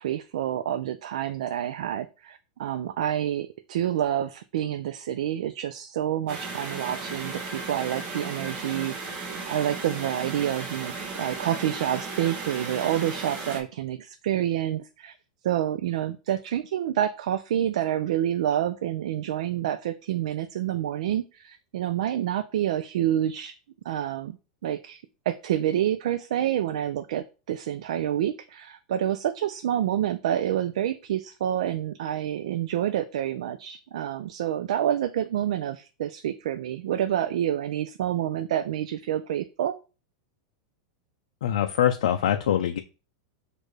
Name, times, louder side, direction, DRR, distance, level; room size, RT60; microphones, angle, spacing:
voice 1, 0.0-15.1 15.4-23.6 23.9-24.4 24.6-39.8, right 11 dB, 75° right, 9 dB, 0.3 m, -28 dB
sound 1, 6.3-13.6, right 3 dB, 30° right, 0.9 m, -35 dB
voice 2, 41.4-42.8, left 10 dB, 80° left, 6 dB, 0.4 m, -23 dB
6.3 x 2.5 x 3.2 m, 0.33 s
supercardioid pair, 165°, 4 cm